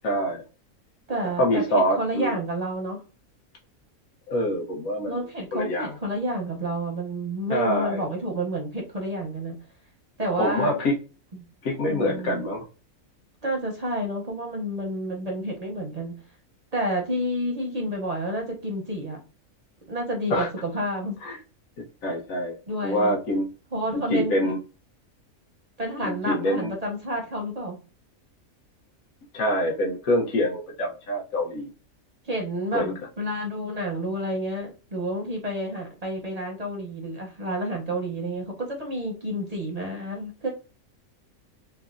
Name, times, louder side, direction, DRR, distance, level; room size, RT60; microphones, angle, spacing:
voice 1, 0.0-0.4 1.4-2.3 4.3-5.2 5.5-5.9 7.5-8.0 10.4-10.9 11.6-12.6 20.3-20.5 21.2-21.4 22.0-22.5 22.8-23.4 23.9-24.6 26.0-26.7 29.3-31.7 32.7-32.9, equal, 75° left, 0 dB, 1.2 m, -25 dB
voice 2, 1.1-3.0 5.1-9.6 10.2-10.8 11.3-11.5 11.9-12.5 13.4-16.1 16.7-19.2 19.9-21.2 22.7-23.1 23.7-24.5 25.8-27.8 32.2-40.5, equal, 45° right, 0 dB, 0.5 m, -30 dB
3.4 x 2.0 x 2.4 m, 0.34 s
omnidirectional pair, 1.5 m